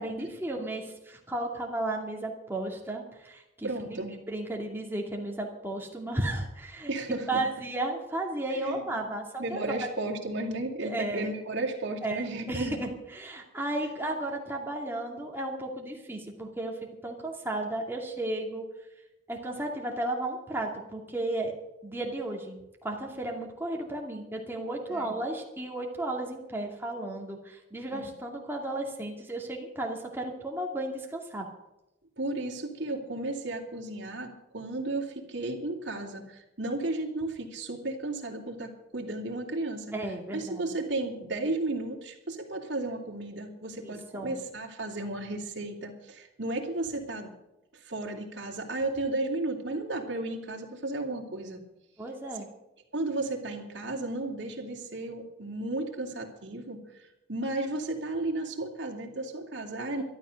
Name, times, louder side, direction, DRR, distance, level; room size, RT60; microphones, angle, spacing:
voice 1, 0.0-4.0 4.3-6.9 7.3-9.9 10.8-11.3 12.0-16.7 17.0-18.6 19.3-21.5 21.8-31.5 39.9-40.6 43.8-44.3 52.0-52.5, right 1 dB, 10° right, 0 dB, 2.4 m, -34 dB
voice 2, 3.6-4.1 6.9-7.4 8.5-9.1 9.4-12.8 13.8-13.9 24.9-25.2 27.9-28.1 32.2-39.9 40.3-47.3 47.7-51.6 52.9-60.0, right 2 dB, 60° right, 0 dB, 2.8 m, -34 dB
13.0 x 12.5 x 6.5 m, 0.94 s
head